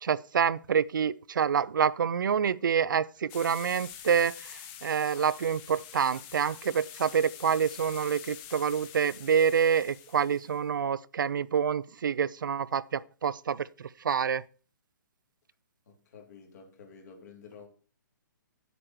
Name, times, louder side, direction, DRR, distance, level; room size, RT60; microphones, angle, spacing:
voice 1, 0.0-14.4, right 7 dB, 75° right, 0.5 m, -27 dB
sound 1, 3.3-10.6, left 10 dB, 30° left, 1.1 m, -46 dB
voice 2, 15.9-17.7, left 5 dB, 55° left, 3.1 m, -51 dB
9.7 x 8.1 x 4.4 m
hypercardioid pair, 140°, 11 cm